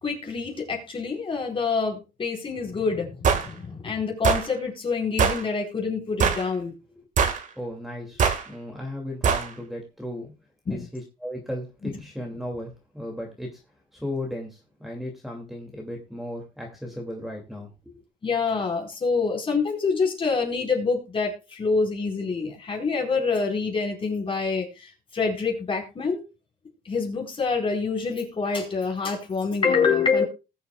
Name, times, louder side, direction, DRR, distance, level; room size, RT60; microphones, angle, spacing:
voice 1, 0.0-6.7 10.7-10.8 11.8-12.0 18.2-24.7 25.1-26.2 26.8-30.2, left 4 dB, 30° left, 1 dB, 4.5 m, -26 dB
sound 1, 3.2-3.5 4.2-4.5 5.2-5.4 6.2-6.5 7.2-7.4 8.2-8.4 9.2-9.5, right 6 dB, 50° right, 1.7 m, -21 dB
voice 2, 7.6-8.2 8.5-10.3 10.7-13.6 13.9-18.0, left 1 dB, ahead, -1 dB, 2.4 m, -35 dB
20.5 x 7.0 x 2.3 m, 0.28 s
cardioid pair, 110°, 17 cm